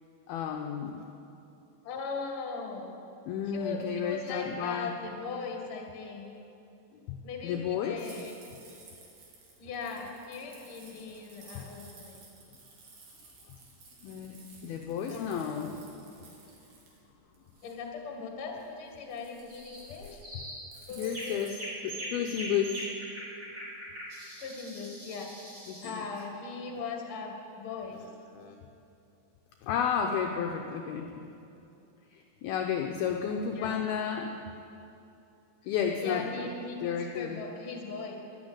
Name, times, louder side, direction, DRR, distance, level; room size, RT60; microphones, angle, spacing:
voice 1, 0.3-1.0 3.3-4.9 7.1-7.2 7.4-8.0 11.6-11.7 13.5-13.6 14.0-15.9 20.3-20.4 20.9-22.9 25.7-26.1 28.3-28.6 29.6-31.3 32.1-34.4 35.7-36.4 36.8-37.4, left 7 dB, 80° left, 2 dB, 2.3 m, -32 dB
voice 2, 1.8-3.0 3.5-6.3 7.2-8.4 9.6-12.2 15.1-15.8 17.6-20.4 20.9-21.3 24.4-25.3 25.8-28.0 33.5-33.8 36.0-38.1, left 4 dB, 45° left, 1 dB, 1.9 m, -39 dB
sound 1, 8.0-21.5, right 3 dB, 65° right, 4.3 m, -55 dB
sound 2, 19.5-19.8 20.2-20.6 21.0-26.0, right 1 dB, 25° right, 4.2 m, -41 dB
13.0 x 12.0 x 8.8 m, 2.7 s
omnidirectional pair, 5.2 m